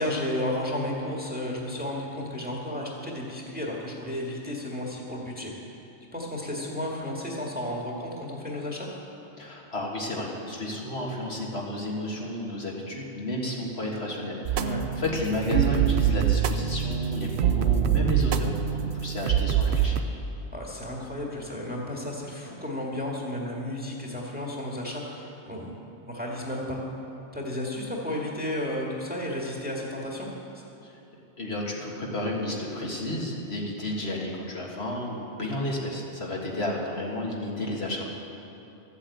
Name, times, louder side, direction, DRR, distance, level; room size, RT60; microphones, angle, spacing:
voice 1, 0.0-5.5 6.1-8.9 14.5-14.9 20.5-25.7 26.1-26.8 27.3-30.3, left 1 dB, 10° right, -3 dB, 1.9 m, -33 dB
voice 2, 9.4-20.0 30.8-31.0 31.4-38.0, left 1 dB, 60° left, -3 dB, 2.0 m, -32 dB
sound 1, 14.5-20.0, right 9 dB, 65° right, 0.9 m, -24 dB
13.5 x 8.2 x 8.3 m, 2.8 s
omnidirectional pair, 1.2 m